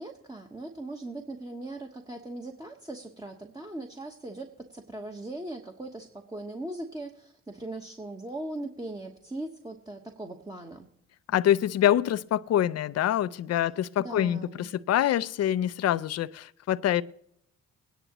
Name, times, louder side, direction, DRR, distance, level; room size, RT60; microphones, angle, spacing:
voice 1, 0.0-10.9 14.0-14.7, right 2 dB, 10° right, 1.2 m, -39 dB
voice 2, 11.3-17.0, left 11 dB, 50° left, 0.5 m, -25 dB
21.0 x 10.0 x 3.0 m
supercardioid pair, 65°, 32 cm